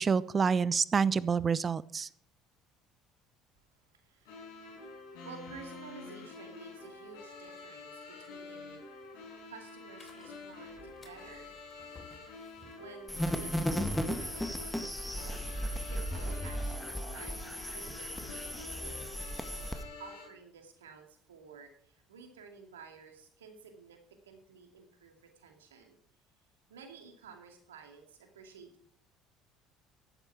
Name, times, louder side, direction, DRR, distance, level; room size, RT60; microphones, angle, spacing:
voice 1, 0.0-2.1, right 6 dB, 30° right, 20 dB, 0.7 m, -27 dB
voice 2, 3.9-4.6 5.2-11.5 12.8-17.4 17.7-19.1 19.5-26.0 26.7-28.9, right 5 dB, 75° right, 5 dB, 2.4 m, -53 dB
sound 1, 4.2-20.2, left 3 dB, 65° left, 6.1 m, -48 dB
sound 2, 10.0-19.1, left 4 dB, 30° left, 3.5 m, -53 dB
sound 3, 13.1-19.8, equal, 5° left, 1.9 m, -35 dB
14.5 x 12.0 x 4.8 m, 0.63 s
figure-of-eight pair, 60°, 0 cm